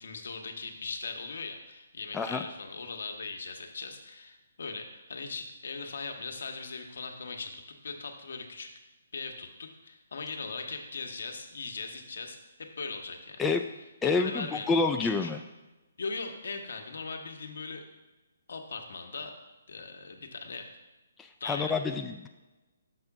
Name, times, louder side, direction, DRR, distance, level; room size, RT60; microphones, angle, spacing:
voice 1, 0.0-8.7 9.1-13.4 14.0-14.7 15.0-15.3 16.0-17.8 18.5-19.3 19.7-20.7 21.4-21.7, left 4 dB, 75° left, 4 dB, 1.1 m, -39 dB
voice 2, 14.0-15.4 21.2-22.3, left 4 dB, 10° left, 4 dB, 0.3 m, -28 dB
6.5 x 4.3 x 5.9 m, 1.1 s
hypercardioid pair, 150°, 0 cm